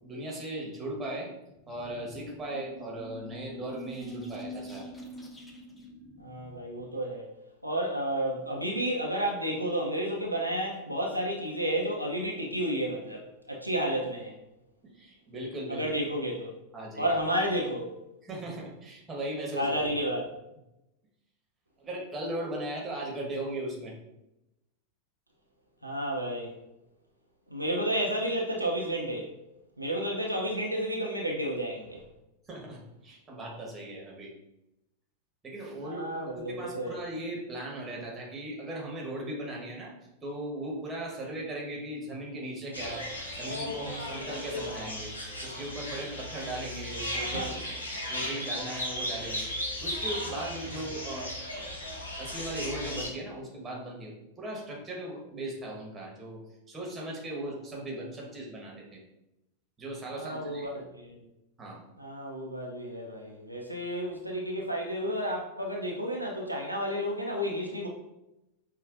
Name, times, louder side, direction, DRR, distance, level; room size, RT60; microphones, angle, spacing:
voice 1, 0.0-1.3 1.7-4.9 14.8-15.8 16.7-17.1 18.2-19.8 21.8-23.9 32.5-34.3 35.4-39.9 40.2-43.1 43.3-45.1 45.4-47.6 47.9-51.3 51.6-51.7 52.2-56.4 56.7-59.0 59.8-60.7 61.6-61.8, right 1 dB, 20° right, -2 dB, 1.1 m, -38 dB
sound 1, 1.5-6.9, equal, 10° left, 0.5 m, -45 dB
voice 2, 6.2-7.3 7.6-14.3 15.7-16.5 17.0-17.9 19.6-20.2 25.8-26.5 27.5-29.3 29.8-32.0 35.8-36.9 47.3-47.5 60.1-60.7 60.9-61.2 62.0-67.9, equal, 90° right, -1 dB, 0.5 m, -31 dB
sound 2, 42.7-53.1, left 1 dB, 75° left, 0.8 m, -36 dB
5.5 x 2.3 x 2.4 m, 0.91 s
figure-of-eight pair, 90°, 0 cm